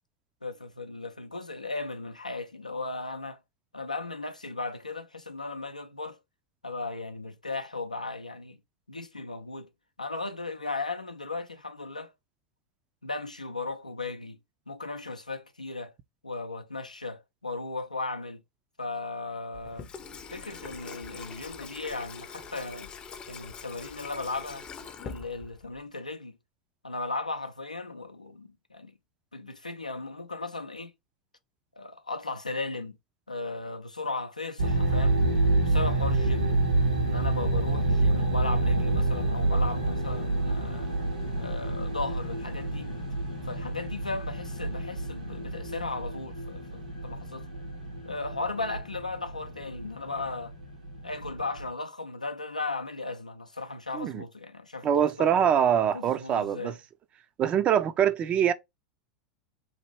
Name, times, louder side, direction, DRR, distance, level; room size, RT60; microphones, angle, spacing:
voice 1, 0.4-3.4 3.7-6.2 6.6-8.6 8.9-9.7 10.0-12.1 13.0-14.4 14.7-15.9 16.2-18.4 18.8-19.9 20.3-22.9 23.3-24.7 25.0-26.4 26.8-28.9 29.3-30.9 31.8-33.0 33.3-35.2 35.7-36.7 37.0-40.9 41.4-42.9 43.4-47.5 48.0-50.5 51.0-55.3 55.9-56.8, left 3 dB, 85° left, 0.5 m, -36 dB
Water tap faucet / Sink (filling or washing), 19.5-25.8, left 5 dB, 25° left, 0.6 m, -43 dB
sound 1, 34.6-51.7, right 2 dB, 90° right, 1.4 m, -28 dB
voice 2, 54.8-56.7 57.4-58.5, right 9 dB, 30° right, 0.4 m, -24 dB
3.2 x 2.5 x 3.1 m
figure-of-eight pair, 85°, 4 cm